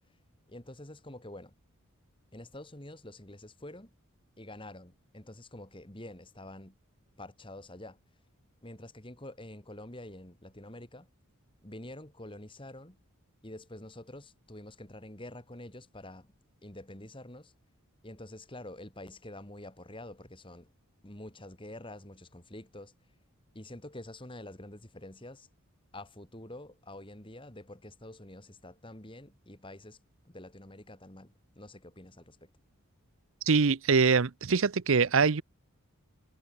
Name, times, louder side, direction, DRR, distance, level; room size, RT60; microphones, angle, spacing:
voice 1, 0.5-1.5 2.3-3.9 4.4-6.8 7.2-8.0 8.6-11.1 11.6-13.0 13.4-16.3 16.6-17.5 18.0-20.7 21.0-22.9 23.5-25.5 25.9-30.0 30.3-32.5, left 1 dB, 25° left, 2.7 m, -47 dB
voice 2, 33.5-35.4, right 5 dB, 65° right, 0.7 m, -24 dB
head